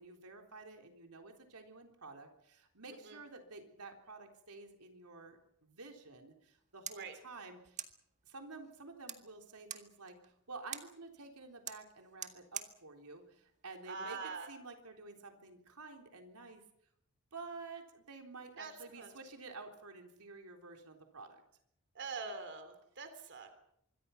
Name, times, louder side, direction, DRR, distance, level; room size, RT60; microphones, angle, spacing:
voice 1, 0.0-7.8 8.2-16.6 17.3-21.4, right 3 dB, 85° right, 3 dB, 3.7 m, -51 dB
sound 1, 6.4-14.5, right 8 dB, 35° right, 1.8 m, -50 dB
voice 2, 13.9-14.5 18.6-18.7 19.0-19.1 21.9-23.5, right 4 dB, 55° right, 8 dB, 3.2 m, -44 dB
25.5 x 23.5 x 5.8 m, 0.73 s
head